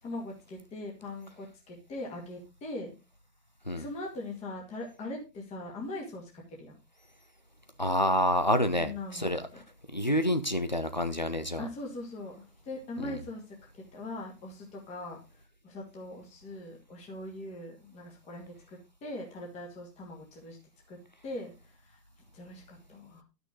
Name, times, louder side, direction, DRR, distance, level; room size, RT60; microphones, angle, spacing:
voice 1, 0.0-2.9 3.7-6.8 8.8-9.6 11.6-13.6 13.9-15.2 15.6-20.6 20.9-21.0 21.2-21.5 21.9-22.0 22.3-23.2, left 2 dB, 15° left, 2.2 m, -41 dB
voice 2, 7.8-9.5 9.9-11.7 13.0-13.2, equal, 30° left, 0.4 m, -28 dB
12.0 x 6.1 x 3.7 m
figure-of-eight pair, 135°, 50 cm